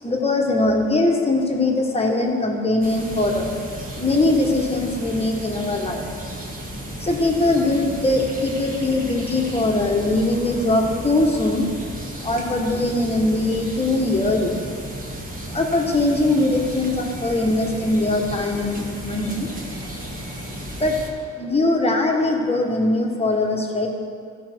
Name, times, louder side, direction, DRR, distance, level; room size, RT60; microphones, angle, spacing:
voice 1, 0.0-3.5 4.0-6.0 7.0-11.7 12.2-14.5 15.5-19.5 20.8-21.0 21.4-23.9, left 2 dB, 20° left, 1 dB, 1.5 m, -21 dB
sound 1, 2.8-21.1, right 1 dB, 30° right, 1.9 m, -34 dB
14.5 x 5.5 x 4.6 m, 2.3 s
cardioid pair, 90°, 30 cm